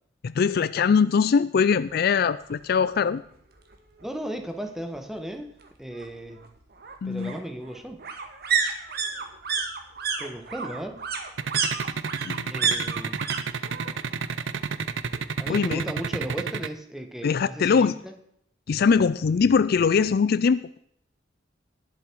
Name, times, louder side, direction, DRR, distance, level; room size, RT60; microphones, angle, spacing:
voice 1, 0.2-3.2 7.0-7.3 12.2-12.5 15.5-15.8 17.2-17.9 18.7-20.8, left 6 dB, 55° left, 16 dB, 0.4 m, -22 dB
sound 1, 2.5-2.6 3.0-3.1 3.3-4.3 5.6-13.4 13.6-14.2 14.5-15.5 15.8-15.9, right 6 dB, 55° right, 1.7 m, -30 dB
voice 2, 4.0-5.5 5.8-6.4 7.0-8.0 10.2-11.0 12.5-13.3 15.4-18.1, right 1 dB, ahead, 5 dB, 1.4 m, -35 dB
sound 2, 11.4-16.7, right 5 dB, 80° right, 0.7 m, -29 dB
19.5 x 7.1 x 4.7 m, 0.70 s
head